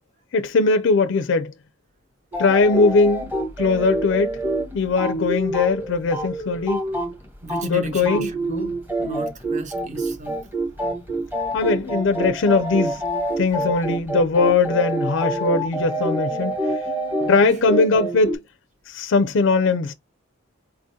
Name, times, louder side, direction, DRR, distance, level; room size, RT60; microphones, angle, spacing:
voice 1, 0.3-1.5 2.4-4.4 4.7-6.8 7.6-8.3 11.5-13.0 13.4-16.5 17.3-18.4 18.9-19.9, left 4 dB, 60° left, 0.4 m, -20 dB
sound 1, 2.3-7.7 8.0-18.4, right 1 dB, 10° right, 1.0 m, -26 dB
voice 2, 7.4-8.7 9.0-10.4 17.2-17.3, right 2 dB, 35° right, 0.9 m, -34 dB
4.4 x 3.7 x 2.6 m
head